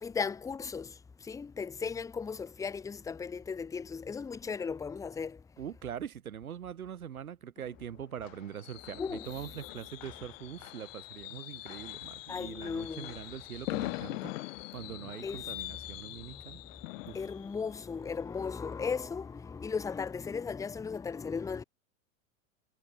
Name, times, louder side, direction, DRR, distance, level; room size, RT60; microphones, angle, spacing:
voice 1, 0.0-0.9 1.2-5.4 9.0-9.3 12.3-13.2 15.0-15.5 16.3-16.4 17.1-21.6, left 5 dB, 10° left, 0.5 m, -36 dB
voice 2, 5.6-14.3 14.7-16.6 17.1-17.2, right 9 dB, 85° right, 6.2 m, -43 dB
Fireworks, 7.6-19.3 19.6-19.9 20.2-20.3, left 20 dB, 65° left, 7.0 m, -43 dB
hypercardioid pair, 100°, 41 cm